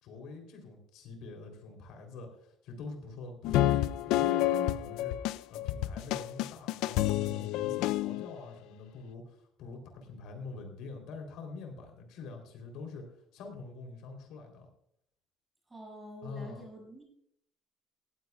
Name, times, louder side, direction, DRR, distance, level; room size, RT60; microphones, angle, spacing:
voice 1, 0.0-5.2 5.5-13.0 13.3-14.7 16.2-16.7, left 3 dB, 70° left, 3 dB, 3.4 m, -45 dB
sound 1, 3.4-8.4, left 14 dB, 85° left, 0.4 m, -29 dB
voice 2, 15.7-17.0, equal, 10° right, -2 dB, 6.4 m, -47 dB
18.5 x 15.0 x 2.4 m, 0.70 s
cardioid pair, 175°, 0 cm